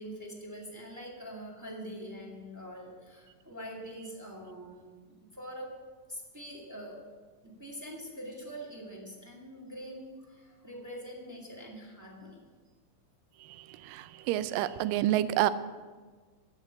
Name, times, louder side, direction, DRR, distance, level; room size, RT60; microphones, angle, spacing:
voice 1, 0.0-4.9 5.2-5.7 6.1-7.0 7.4-12.4, equal, 10° right, -3 dB, 1.1 m, -44 dB
voice 2, 13.8-15.5, right 14 dB, 90° right, 14 dB, 2.3 m, -28 dB
13.0 x 6.6 x 7.1 m, 1.4 s
omnidirectional pair, 3.9 m